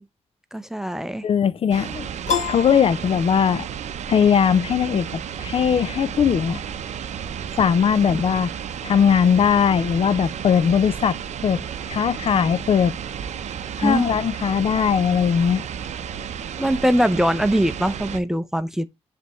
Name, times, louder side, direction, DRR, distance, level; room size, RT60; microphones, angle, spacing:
voice 1, 0.5-1.2 13.8-14.1 16.6-18.9, equal, 5° right, 0.5 m, -22 dB
voice 2, 1.2-2.1 2.5-3.7 4.1-6.6 7.6-8.5 8.8-11.2 11.4-13.0 13.8-15.6, left 7 dB, 55° left, 0.4 m, -19 dB
sound 1, 1.7-18.2, right 8 dB, 85° right, 0.6 m, -32 dB
Piano, 2.3-3.8, left 7 dB, 80° left, 1.8 m, -28 dB
10.0 x 3.5 x 3.0 m
wide cardioid pair, 120°, 12 cm